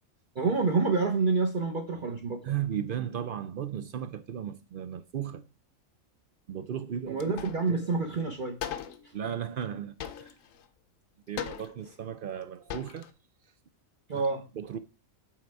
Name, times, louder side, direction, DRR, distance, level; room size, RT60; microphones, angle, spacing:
voice 1, 0.3-2.5 7.1-8.6 14.1-14.5, right 4 dB, 40° right, 0.9 m, -28 dB
voice 2, 2.4-5.4 6.5-7.8 9.1-10.3 11.3-13.1 14.1-14.2 14.6-14.8, right 9 dB, 60° right, 0.5 m, -35 dB
sound 1, 7.2-7.7 8.0-8.1 8.6-9.1 10.0-10.7 11.4-12.0 12.4-12.5 12.7-13.1, left 9 dB, 75° left, 1.1 m, -38 dB
7.7 x 4.2 x 4.7 m
omnidirectional pair, 1.4 m